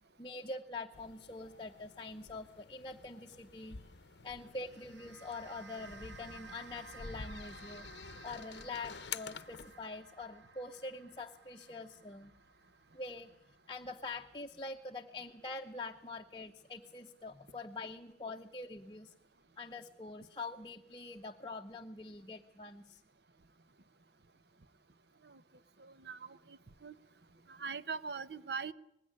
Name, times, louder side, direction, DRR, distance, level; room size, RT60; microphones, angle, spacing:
voice 1, 0.2-3.8 4.2-7.9 8.2-12.3 12.9-13.3 13.7-19.1 19.6-23.0, left 3 dB, 25° left, 3 dB, 0.8 m, -45 dB
sound 1, 0.9-9.8, left 6 dB, 70° left, 0.7 m, -50 dB
sound 2, 4.4-14.9, right 3 dB, 80° right, 1.8 m, -56 dB
voice 2, 25.8-27.0 27.5-28.7, right 5 dB, 60° right, 14 dB, 0.8 m, -42 dB
20.0 x 16.0 x 9.9 m, 0.81 s
head